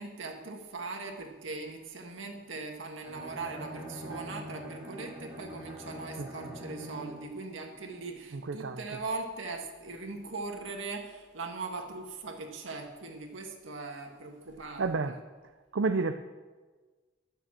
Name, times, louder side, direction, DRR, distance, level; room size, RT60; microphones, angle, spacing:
voice 1, 0.0-15.2, right 3 dB, 85° right, 2 dB, 1.8 m, -40 dB
Bowed string instrument, 3.0-7.4, right 1 dB, 15° right, 3.3 m, -43 dB
voice 2, 8.4-8.8 14.8-15.1 15.7-16.2, right 4 dB, 70° right, 8 dB, 0.5 m, -29 dB
12.5 x 6.9 x 7.5 m, 1.4 s
head